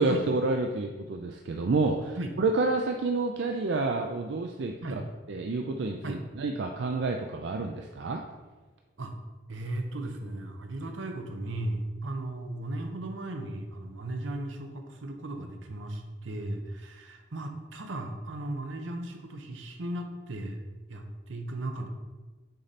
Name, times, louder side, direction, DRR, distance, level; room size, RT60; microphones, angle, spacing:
voice 1, 0.0-4.7 5.3-8.2, right 3 dB, 65° right, 3 dB, 0.4 m, -29 dB
voice 2, 9.5-20.6 20.9-21.9, right 1 dB, 80° right, 5 dB, 0.8 m, -36 dB
6.5 x 4.2 x 4.1 m, 1.3 s
head